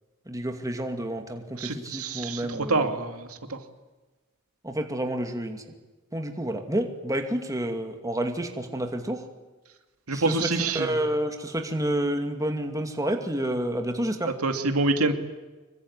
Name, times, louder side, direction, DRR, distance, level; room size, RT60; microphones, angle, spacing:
voice 1, 0.3-3.0 4.6-5.6 6.1-9.2 10.1-14.3, right 1 dB, 15° right, 5 dB, 2.5 m, -29 dB
voice 2, 1.6-3.6 10.1-10.9 14.2-15.1, right 3 dB, 70° right, 6 dB, 2.6 m, -26 dB
26.0 x 23.0 x 9.8 m, 1.2 s
head